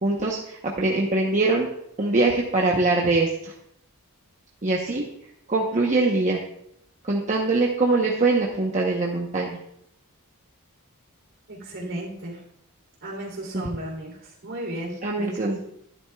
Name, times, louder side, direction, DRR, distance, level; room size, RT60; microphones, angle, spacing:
voice 1, 0.0-1.7 2.0-3.5 4.6-5.0 5.5-6.4 7.0-9.6 13.5-13.7 15.0-15.6, right 3 dB, 35° right, -1 dB, 0.9 m, -23 dB
voice 2, 11.5-12.4 13.0-14.1 14.4-15.6, right 1 dB, 60° right, -1 dB, 3.2 m, -34 dB
12.0 x 10.5 x 2.3 m, 0.75 s
head